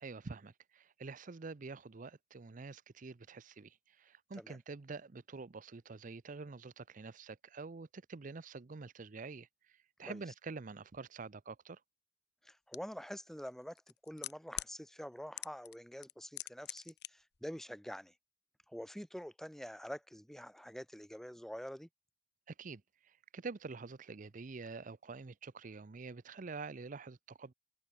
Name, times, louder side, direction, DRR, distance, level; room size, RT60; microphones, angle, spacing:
voice 1, 0.0-11.8 22.5-27.5, right 4 dB, 45° right, 0.6 m, -47 dB
voice 2, 12.4-18.1 18.7-21.9, equal, ahead, 1.1 m, -46 dB
sound 1, 12.7-12.8 13.8-14.7 15.4-15.8 16.0-17.1 17.3-17.4, left 14 dB, 65° left, 0.7 m, -42 dB
head